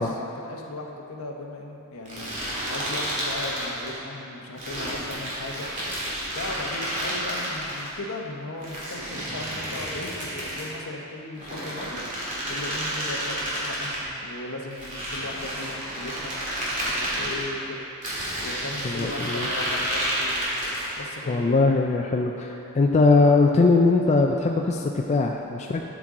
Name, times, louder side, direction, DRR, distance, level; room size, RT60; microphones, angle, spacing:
voice 1, 0.0-5.7 6.3-16.3 16.8-17.8 18.4-20.5 21.0-21.6, left 2 dB, 65° left, 1 dB, 0.9 m, -37 dB
sound 1, 2.1-4.0 4.6-7.9 8.6-10.7 11.3-14.0 14.7-17.4 18.0-21.0, right 1 dB, 35° right, 2.2 m, -30 dB
voice 2, 18.8-19.5 21.3-25.9, left 3 dB, 30° left, 1 dB, 0.3 m, -21 dB
12.0 x 6.1 x 3.7 m, 2.9 s
head